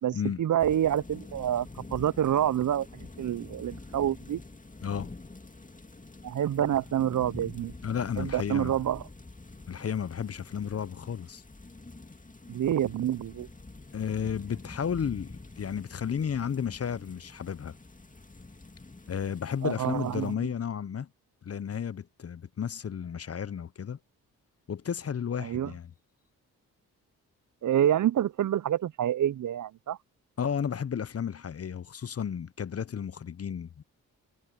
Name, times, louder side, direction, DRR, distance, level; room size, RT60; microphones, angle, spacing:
voice 1, 0.0-4.4 6.2-7.7 8.2-9.0 12.5-13.5 19.6-20.3 25.4-25.7 27.6-30.0, right 11 dB, 55° right, 0.6 m, -27 dB
sound 1, 0.6-20.3, left 3 dB, 20° left, 2.3 m, -47 dB
voice 2, 7.8-8.8 9.7-11.4 13.9-17.7 19.1-21.1 21.4-24.0 24.7-25.9 30.4-33.8, left 7 dB, 40° left, 0.8 m, -33 dB
supercardioid pair, 45°, 38 cm